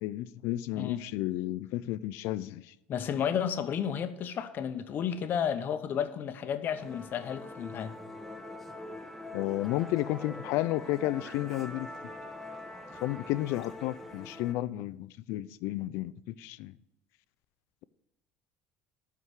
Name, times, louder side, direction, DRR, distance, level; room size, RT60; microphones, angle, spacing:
voice 1, 0.0-2.7 9.3-11.9 13.0-16.7, left 15 dB, 75° left, 0.4 m, -32 dB
voice 2, 2.9-8.0, left 8 dB, 50° left, 0.9 m, -32 dB
Musical instrument, 6.7-14.5, left 2 dB, 5° left, 1.1 m, -44 dB
12.5 x 4.8 x 7.9 m
supercardioid pair, 110°, 4 cm